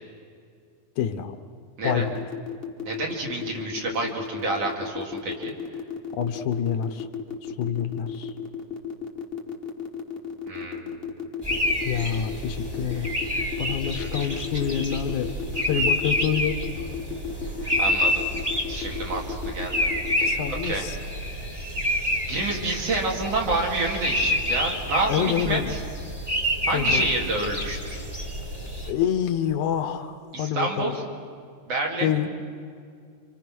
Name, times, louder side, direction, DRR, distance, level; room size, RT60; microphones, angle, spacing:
voice 1, 1.0-1.4 1.8-2.2 6.1-7.1 7.4-8.3 11.9-13.1 13.6-16.6 20.2-21.0 25.1-25.7 26.7-27.1 28.9-31.0 32.0-32.3, left 9 dB, 75° left, 8 dB, 2.5 m, -27 dB
sound 1, 1.8-20.3, left 8 dB, 30° left, 1.2 m, -34 dB
voice 2, 2.9-5.5 10.5-11.1 13.9-14.3 17.6-18.2 18.7-19.9 20.2-20.9 22.3-25.8 26.7-28.0 30.3-31.0 31.7-32.1, right 2 dB, 55° right, -1 dB, 3.6 m, -29 dB
sound 2, 11.4-28.9, equal, 10° right, 1.8 m, -28 dB
28.5 x 26.0 x 6.2 m, 2.2 s
omnidirectional pair, 3.5 m